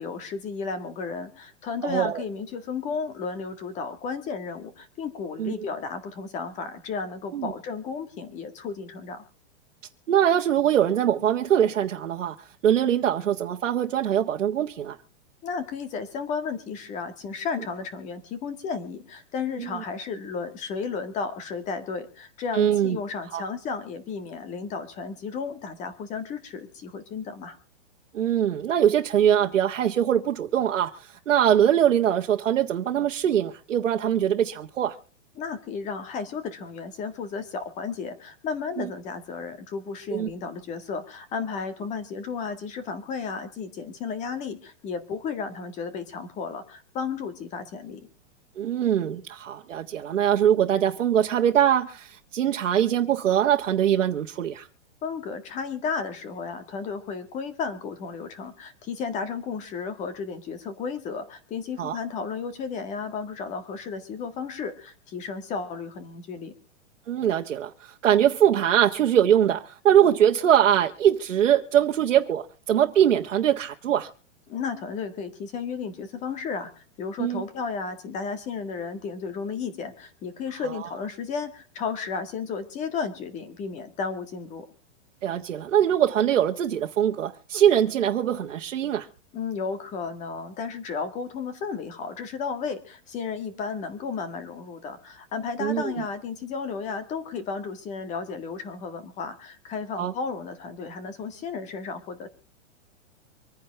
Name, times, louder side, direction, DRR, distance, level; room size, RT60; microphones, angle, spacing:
voice 1, 0.0-9.2 15.4-27.6 35.4-48.1 55.0-66.5 74.5-84.7 89.3-102.3, left 5 dB, 20° left, 1.8 m, -33 dB
voice 2, 1.8-2.2 5.4-5.5 7.3-7.5 10.1-15.0 19.6-19.8 22.5-23.0 23.3-23.4 28.1-35.0 38.8-38.9 40.1-40.3 48.6-54.7 61.8-62.0 67.1-74.1 77.2-77.4 85.2-89.1 95.6-96.0 100.0-100.1, right 10 dB, 85° right, 1.6 m, -22 dB
26.0 x 9.9 x 3.5 m
hypercardioid pair, 165°, 37 cm